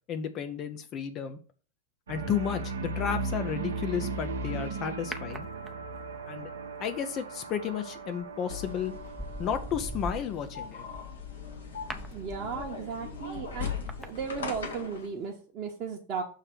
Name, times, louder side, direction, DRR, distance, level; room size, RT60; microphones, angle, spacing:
voice 1, 0.1-1.4 2.1-5.5 6.3-6.5 6.8-8.9 9.4-10.9, left 8 dB, 35° left, 8 dB, 0.6 m, -33 dB
sound 1, 2.1-10.3, right 3 dB, 70° right, 0.9 m, -37 dB
sound 2, 5.1-6.1 8.0-8.3 8.8-15.0 15.2-15.3, equal, ahead, 0.7 m, -42 dB
sound 3, 8.5-15.0, left 5 dB, 65° left, 1.5 m, -40 dB
voice 2, 12.1-13.7 14.1-16.2, right 6 dB, 35° right, -3 dB, 1.1 m, -35 dB
6.6 x 3.3 x 6.0 m, 0.39 s
figure-of-eight pair, 90°, 0 cm